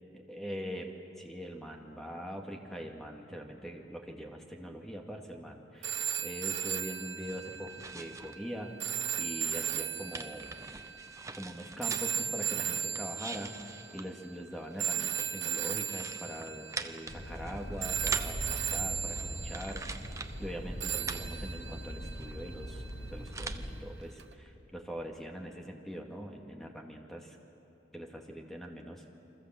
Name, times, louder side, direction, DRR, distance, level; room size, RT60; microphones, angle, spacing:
voice 1, 0.1-8.7 9.2-10.6 11.3-20.1 20.4-22.8 23.1-27.4 27.9-29.0, equal, ahead, 1 dB, 2.3 m, -42 dB
sound 1, 5.8-14.0 14.8-17.5 17.8-19.9 20.8-23.0 24.2-24.3, right 8 dB, 80° right, 1.0 m, -36 dB
sound 2, 7.2-8.4 8.7-12.3 12.7-20.5 20.8-23.7, right 4 dB, 15° right, 0.8 m, -44 dB
sound 3, 17.1-23.8, equal, 85° left, 5.1 m, -41 dB
29.5 x 24.0 x 7.8 m, 2.9 s
head